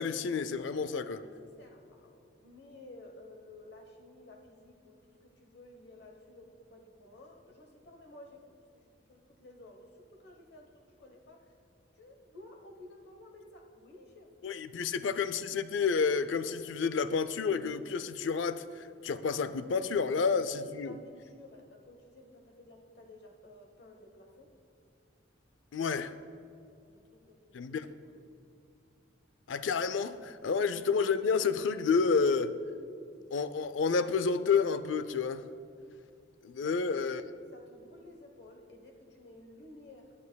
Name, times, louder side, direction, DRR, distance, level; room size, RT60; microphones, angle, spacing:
voice 1, 0.0-1.2 14.4-21.0 25.7-26.1 27.5-27.9 29.5-32.5 33.3-35.4 36.4-37.2, left 5 dB, 75° left, 0.4 m, -30 dB
voice 2, 0.7-11.6 11.9-14.3 14.8-14.9 20.1-24.5 26.9-28.3 30.5-30.8 33.2-33.3 36.6-36.8 37.5-40.1, left 2 dB, 60° left, 1.1 m, -54 dB
19.0 x 9.6 x 2.3 m
head